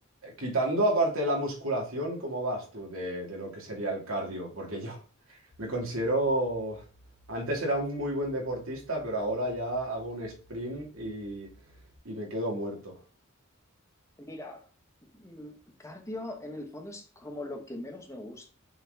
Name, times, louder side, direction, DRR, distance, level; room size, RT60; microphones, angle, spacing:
voice 1, 0.2-5.0 5.6-6.8 7.3-11.5 12.0-13.0, right 1 dB, 75° right, 2.8 m, -31 dB
sound 1, 5.5-12.0, right 1 dB, 80° left, 1.4 m, -58 dB
voice 2, 14.2-14.7 15.1-18.5, left 1 dB, 15° left, 1.1 m, -41 dB
6.8 x 4.4 x 4.0 m
head